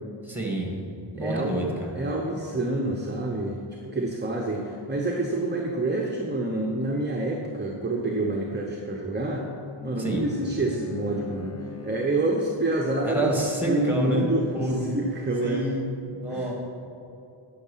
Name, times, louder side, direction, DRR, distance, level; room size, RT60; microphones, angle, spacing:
voice 1, 0.2-0.7 1.1-2.0 10.0-10.3 13.0-15.0 15.4-15.9 16.2-16.5, right 1 dB, 5° right, -1 dB, 2.4 m, -28 dB
voice 2, 1.1-1.7 1.9-3.6 3.8-9.5 9.8-11.6 11.8-13.4 13.6-14.5 14.9-15.7 16.3-16.5, right 2 dB, 20° right, 0 dB, 1.0 m, -27 dB
Bowed string instrument, 9.1-12.8, left 5 dB, 30° left, 0.7 m, -42 dB
11.5 x 6.5 x 5.7 m, 2.9 s
wide cardioid pair, 85°, 50 cm